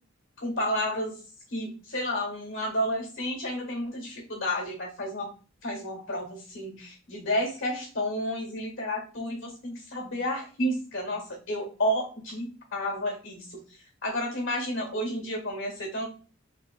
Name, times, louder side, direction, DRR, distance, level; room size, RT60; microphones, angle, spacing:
voice 1, 0.4-1.1 1.5-5.3 5.6-13.6 14.0-16.1, equal, 65° left, 1 dB, 1.4 m, -31 dB
3.6 x 2.9 x 2.3 m, 0.37 s
head